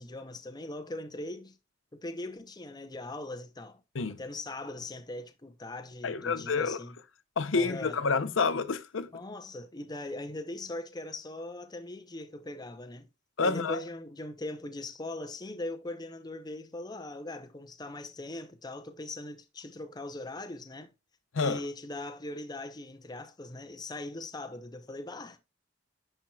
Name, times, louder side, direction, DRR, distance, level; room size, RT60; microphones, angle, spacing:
voice 1, 0.0-1.6 1.9-3.8 4.1-7.0 7.5-8.0 9.1-13.1 13.4-20.9 21.4-25.4, left 2 dB, 20° left, 0.6 m, -40 dB
voice 2, 6.0-6.8 7.4-9.1 13.4-13.8 21.3-21.6, left 4 dB, 75° left, 0.7 m, -28 dB
10.5 x 4.5 x 2.3 m
head